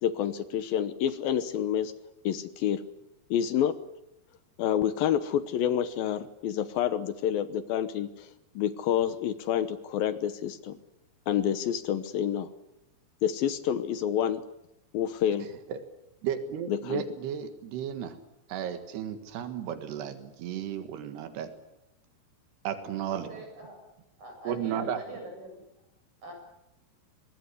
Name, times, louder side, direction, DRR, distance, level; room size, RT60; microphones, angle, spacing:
voice 1, 0.0-1.9 2.2-2.8 3.3-3.8 4.6-8.3 8.6-10.8 11.3-12.5 13.2-14.4 14.9-15.5 16.7-17.0, left 10 dB, 70° left, 13 dB, 2.6 m, -28 dB
voice 2, 16.2-18.2 18.5-21.5 22.7-23.3 24.5-25.0, right 9 dB, 90° right, 9 dB, 3.8 m, -34 dB
voice 3, 23.1-23.8 24.2-25.6 26.2-26.3, right 1 dB, 60° right, 3 dB, 9.4 m, -43 dB
24.0 x 21.0 x 9.9 m, 0.89 s
omnidirectional pair, 4.6 m